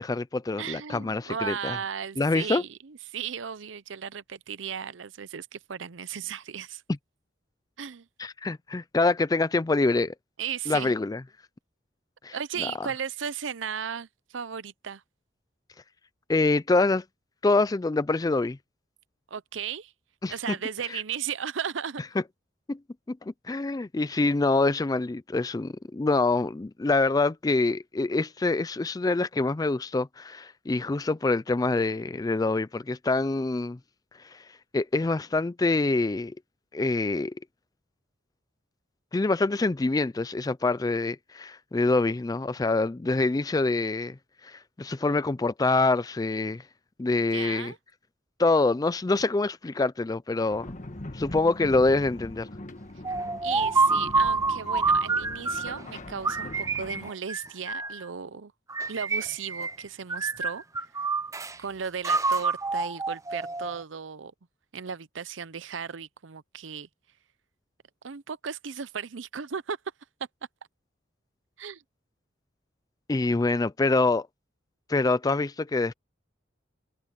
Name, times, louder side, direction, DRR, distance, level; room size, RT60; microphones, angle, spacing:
voice 1, 0.0-1.8 2.2-2.6 8.2-10.1 10.7-11.2 12.2-12.9 16.3-17.0 17.4-18.6 20.2-20.3 20.9-21.0 22.7-22.8 23.1-33.8 34.3-34.4 34.7-36.3 36.7-37.3 39.1-44.2 44.4-46.6 47.0-47.7 48.4-50.7 51.1-52.5 73.1-74.3 74.9-75.9, left 3 dB, 20° left, 0.4 m, -25 dB
voice 2, 0.6-6.8 7.8-8.1 10.4-10.9 12.3-15.0 19.3-19.9 20.3-22.0 47.1-47.8 53.4-58.5 58.9-60.9 61.6-64.3 64.7-66.9 68.0-69.8 71.6-71.8, right 7 dB, 85° right, 0.7 m, -35 dB
sound 1, 50.5-57.1, left 1 dB, 40° left, 1.6 m, -41 dB
sound 2, 53.0-55.8 56.2-58.0 58.7-59.8 60.1-61.5 62.0-63.8, right 3 dB, 15° right, 0.6 m, -27 dB
head